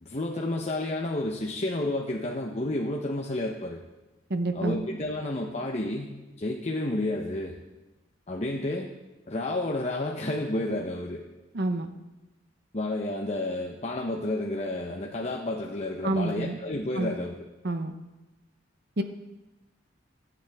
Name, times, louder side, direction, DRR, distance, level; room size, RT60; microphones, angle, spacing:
voice 1, 0.0-3.8 4.5-7.6 8.3-8.9 9.3-11.2 12.7-17.4, left 1 dB, 35° left, 0 dB, 0.9 m, -31 dB
voice 2, 4.3-4.8 11.5-11.9 16.0-16.6 16.9-17.1 17.6-17.9 19.0-19.1, right 2 dB, 60° right, 8 dB, 0.9 m, -28 dB
23.0 x 9.4 x 3.6 m, 1.0 s
head